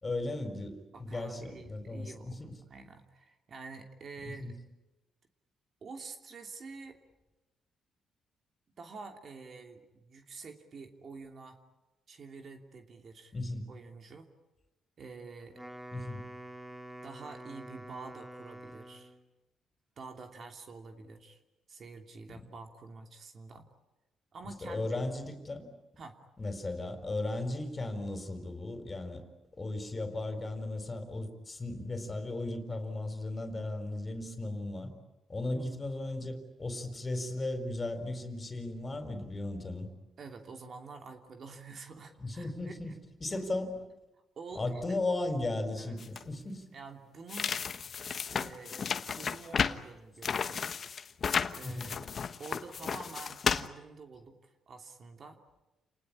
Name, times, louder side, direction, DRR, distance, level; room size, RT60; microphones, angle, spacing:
voice 1, 0.0-2.5 4.4-4.5 13.3-13.7 15.9-16.2 24.6-25.7 26.4-29.2 29.6-34.9 35.3-39.9 42.2-42.9 43.2-43.8 44.5-46.6 51.6-51.9, left 2 dB, 25° left, 8 dB, 4.4 m, -36 dB
voice 2, 0.9-4.5 5.8-7.0 8.8-11.6 12.1-13.3 13.7-14.3 15.0-15.6 17.0-19.1 20.0-21.4 21.7-23.7 24.3-24.9 26.0-26.2 35.5-35.8 40.2-42.9 43.3-43.4 44.4-45.0 45.8-46.0 46.7-47.5 48.3-50.7 51.5-52.1 52.4-55.4, right 4 dB, 50° right, 5 dB, 2.9 m, -48 dB
Wind instrument woodwind instrument, 15.4-19.3, right 1 dB, 10° right, 2.0 m, -47 dB
sound 1, 46.0-46.2 47.3-49.8 50.2-53.7, left 6 dB, 50° left, 1.2 m, -33 dB
29.0 x 19.5 x 9.9 m, 1.0 s
cardioid pair, 90°, 0 cm